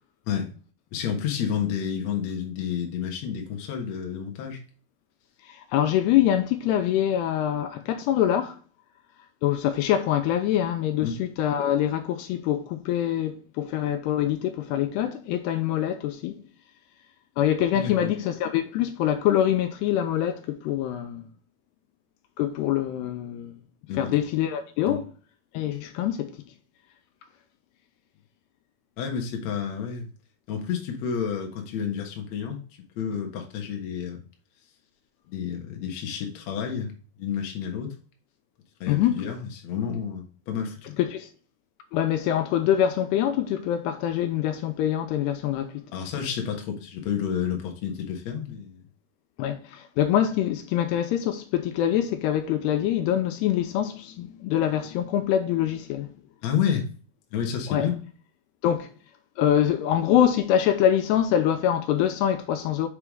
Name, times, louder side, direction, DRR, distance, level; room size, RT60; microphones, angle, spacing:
voice 1, 0.9-4.6 11.0-11.1 17.7-18.1 23.9-24.1 24.9-25.0 29.0-30.1 30.5-32.6 33.0-34.2 35.3-36.9 37.2-37.9 38.8-40.9 45.9-48.8 56.4-56.9 57.3-57.9, left 8 dB, 60° left, 1.9 m, -30 dB
voice 2, 5.5-8.6 9.4-16.4 17.4-21.3 22.4-23.6 24.0-25.1 25.5-26.3 38.9-39.2 41.0-41.3 41.9-45.8 49.4-56.1 57.7-57.9 58.6-58.9 59.4-62.9, left 10 dB, 85° left, 2.7 m, -24 dB
6.8 x 4.9 x 3.6 m
omnidirectional pair, 4.9 m